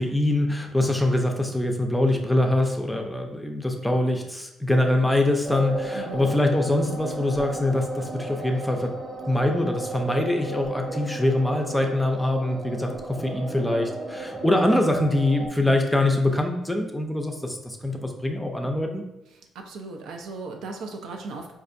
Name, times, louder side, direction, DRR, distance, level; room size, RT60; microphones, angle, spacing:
voice 1, 0.0-8.9 9.3-19.0, left 1 dB, 5° left, 3 dB, 0.5 m, -24 dB
sound 1, 5.4-15.5, right 2 dB, 35° right, 0.6 m, -35 dB
voice 2, 5.9-6.3 19.5-21.5, right 3 dB, 80° right, 3 dB, 0.5 m, -37 dB
4.2 x 2.4 x 2.6 m, 0.92 s
cardioid pair, 90°, 0 cm